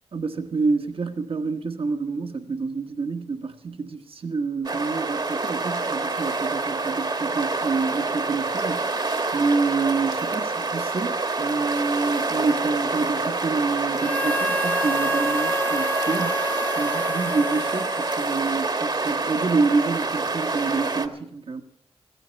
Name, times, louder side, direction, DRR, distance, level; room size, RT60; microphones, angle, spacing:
voice 1, 0.1-8.9 9.3-16.4 16.8-21.6, right 4 dB, 65° right, 6 dB, 1.3 m, -27 dB
sound 1, 4.6-21.1, right 3 dB, 45° right, 1.4 m, -27 dB
Harmonica, 14.0-18.8, equal, 20° left, 0.9 m, -29 dB
15.5 x 15.0 x 5.7 m, 0.69 s
cardioid pair, 50°, 10 cm